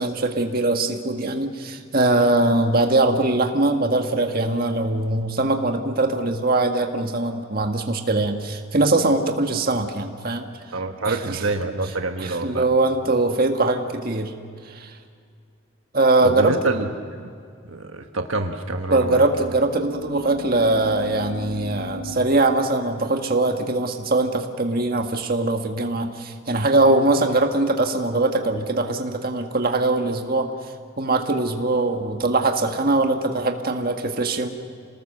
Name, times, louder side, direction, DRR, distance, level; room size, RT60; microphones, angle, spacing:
voice 1, 0.0-10.5 11.1-11.4 12.2-14.3 14.7-14.9 15.9-16.6 18.9-30.5 31.0-34.5, right 2 dB, 45° right, 4 dB, 1.7 m, -21 dB
voice 2, 10.7-12.6 16.2-16.9 17.2-17.3 17.7-19.2, right 2 dB, 75° right, 4 dB, 1.4 m, -27 dB
sound 1, 18.7-22.2, left 2 dB, 30° left, 2.0 m, -37 dB
27.5 x 19.5 x 6.8 m, 2.2 s
head